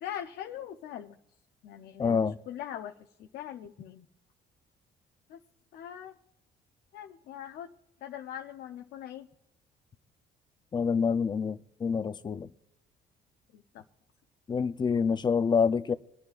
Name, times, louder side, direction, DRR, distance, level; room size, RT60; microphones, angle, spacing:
voice 1, 0.0-1.2 1.6-2.9 3.2-4.1 5.3-5.4 5.7-6.1 6.9-7.7 8.0-9.3 13.5-13.8, left 10 dB, 75° left, 0.7 m, -41 dB
voice 2, 2.0-2.4 10.7-12.5 14.5-15.9, left 6 dB, 25° left, 0.5 m, -27 dB
24.5 x 9.5 x 2.5 m
cardioid pair, 110°, 17 cm